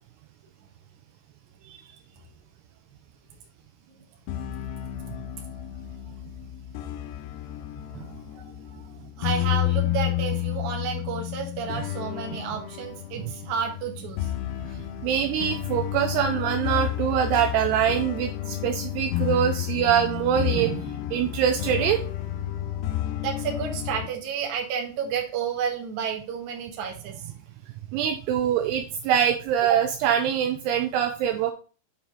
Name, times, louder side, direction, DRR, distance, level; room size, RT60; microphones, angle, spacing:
sound 1, 4.3-24.1, left 13 dB, 80° left, 2.3 m, -31 dB
voice 1, 9.2-14.3 23.2-27.3, right 7 dB, 60° right, 1 dB, 2.2 m, -31 dB
voice 2, 14.7-20.8 21.1-22.0 27.9-31.5, right 9 dB, 80° right, 5 dB, 2.5 m, -24 dB
7.4 x 4.2 x 4.6 m, 0.37 s
omnidirectional pair, 5.0 m